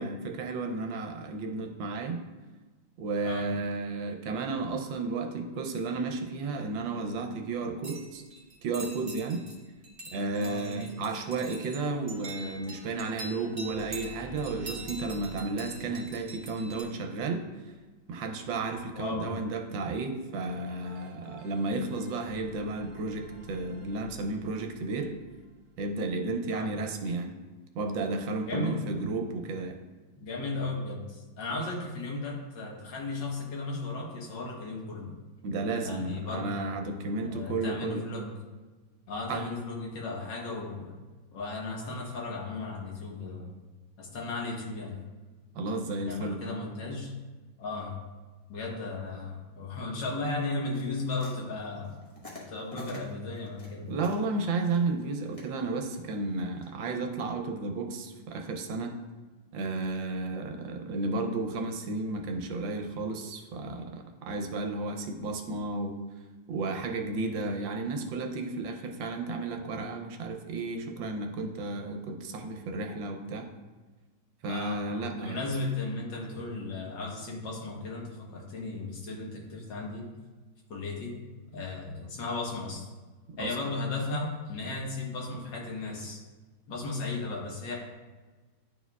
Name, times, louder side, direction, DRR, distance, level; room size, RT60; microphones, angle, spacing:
voice 1, 0.0-2.2 3.0-8.2 8.6-9.4 10.1-17.5 18.1-25.1 25.8-27.3 27.7-29.8 35.4-38.1 39.3-39.4 45.5-46.4 53.9-59.0 59.5-66.0 66.5-73.5 74.4-75.4 83.4-83.6, right 3 dB, 75° right, 3 dB, 1.3 m, -33 dB
sound 1, 7.8-9.6 9.8-16.8, right 2 dB, 30° right, 1.0 m, -44 dB
voice 2, 10.4-10.9 18.9-19.3 26.5-26.7 28.5-28.8 30.2-35.1 35.8-36.7 37.2-38.3 39.1-40.9 41.3-43.5 44.0-45.0 46.1-47.1 47.6-48.0 48.5-52.0 52.4-53.9 74.5-80.1 80.7-81.2 81.5-82.9 83.4-86.2 86.7-87.8, left 3 dB, 70° left, -2 dB, 1.8 m, -35 dB
sound 2, 12.0-17.8 20.5-26.5, right 1 dB, 55° right, 1.4 m, -51 dB
sound 3, 50.7-56.7, left 2 dB, 25° left, 1.0 m, -49 dB
10.5 x 4.3 x 2.3 m, 1.3 s
omnidirectional pair, 2.1 m